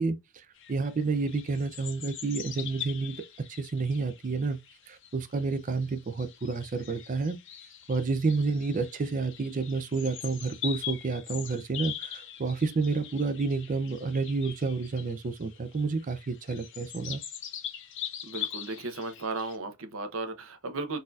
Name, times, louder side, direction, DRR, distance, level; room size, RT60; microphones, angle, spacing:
voice 1, 0.0-4.6 4.9-7.4 7.9-17.2, right 4 dB, 40° right, 0.4 m, -30 dB
sound 1, 0.6-19.6, left 10 dB, 60° left, 0.7 m, -42 dB
voice 2, 18.2-21.0, right 3 dB, 70° right, 0.8 m, -35 dB
4.0 x 2.7 x 2.3 m
head